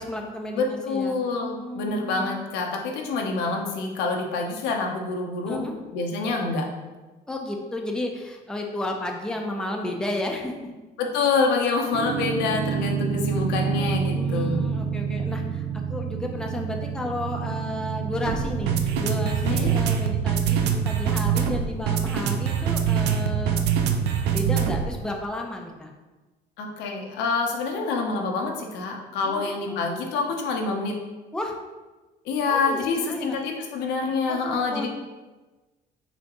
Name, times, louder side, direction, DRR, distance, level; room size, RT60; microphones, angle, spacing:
voice 1, 0.0-0.6 0.9-2.5 5.5-5.7 7.3-10.5 14.1-23.7 24.3-25.9 29.2-30.1 31.3-31.5 32.5-33.4 34.3-34.9, left 1 dB, 5° left, 1 dB, 0.5 m, -33 dB
voice 2, 0.5-5.6 5.9-6.7 11.0-14.7 19.4-19.7 26.6-31.0 32.2-34.9, left 4 dB, 90° left, 1 dB, 0.7 m, -26 dB
sound 1, 11.9-25.0, right 7 dB, 85° right, 0.4 m, -25 dB
4.2 x 3.6 x 3.0 m, 1.2 s
cardioid pair, 110°, 17 cm